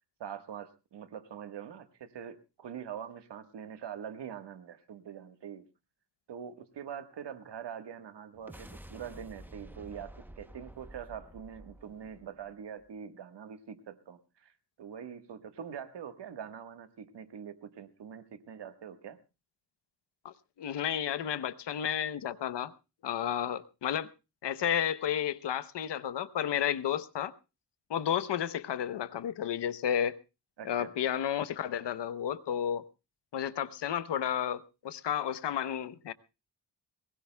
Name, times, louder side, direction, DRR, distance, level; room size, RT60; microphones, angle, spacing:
voice 1, 0.2-5.7 6.3-14.5 14.8-19.2 30.6-30.9, right 8 dB, 80° right, 1.5 m, -44 dB
sound 1, 8.3-12.9, right 1 dB, 5° right, 0.8 m, -50 dB
voice 2, 20.2-22.7 23.0-24.1 24.4-27.3 27.9-30.2 30.6-32.8 33.3-36.1, left 9 dB, 80° left, 0.9 m, -32 dB
22.0 x 19.5 x 2.2 m
wide cardioid pair, 135°, 41 cm